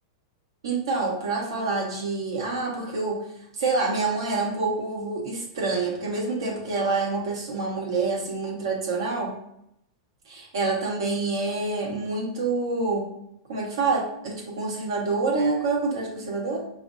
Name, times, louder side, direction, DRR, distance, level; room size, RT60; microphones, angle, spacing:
voice 1, 0.6-3.2 3.6-9.4 10.3-13.1 13.5-16.6, right 3 dB, 80° right, -2 dB, 1.5 m, -27 dB
5.1 x 3.1 x 2.6 m, 0.78 s
hypercardioid pair, 140°, 2 cm